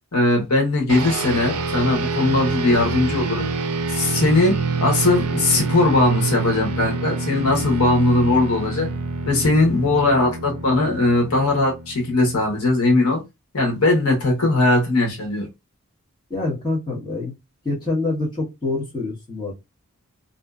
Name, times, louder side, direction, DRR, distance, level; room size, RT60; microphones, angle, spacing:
voice 1, 0.1-3.5 3.9-8.9 9.2-13.2 13.5-15.5, left 2 dB, 80° left, 1.0 m, -19 dB
sound 1, 0.9-12.6, right 3 dB, 75° right, 0.4 m, -27 dB
voice 2, 16.3-17.4 17.6-19.5, left 2 dB, 20° left, 1.1 m, -26 dB
2.6 x 2.2 x 2.3 m
head